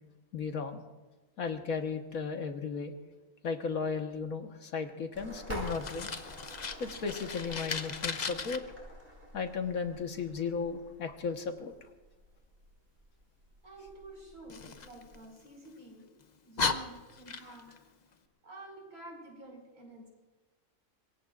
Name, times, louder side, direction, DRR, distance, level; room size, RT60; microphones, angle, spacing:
voice 1, 0.3-0.8 1.4-2.9 3.4-6.1 6.8-8.6 9.3-11.7, left 5 dB, 75° left, 5 dB, 1.7 m, -35 dB
sound 1, 5.1-15.2, equal, 40° right, 6.2 m, -48 dB
Fire, 5.6-8.6 14.5-15.7 16.2-16.3 16.6-17.8, left 5 dB, 40° left, 0.7 m, -36 dB
voice 2, 13.6-16.1 16.4-17.9 18.4-20.1, right 2 dB, 80° right, 0 dB, 5.5 m, -50 dB
25.5 x 22.5 x 2.5 m, 1.2 s
omnidirectional pair, 1.5 m